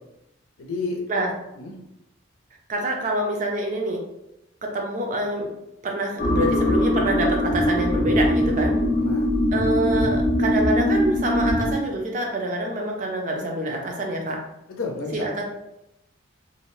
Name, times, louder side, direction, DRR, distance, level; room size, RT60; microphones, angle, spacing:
voice 1, 0.6-1.0 1.5-1.7 9.0-9.3 14.7-15.5, left 3 dB, 85° left, 1 dB, 0.6 m, -31 dB
voice 2, 2.7-4.0 4.6-5.5 5.8-8.7 9.5-14.4 15.1-15.5, right 1 dB, 40° right, 1 dB, 0.4 m, -26 dB
sound 1, 6.2-11.7, left 1 dB, 40° left, 0.5 m, -21 dB
2.5 x 2.0 x 3.0 m, 0.88 s
head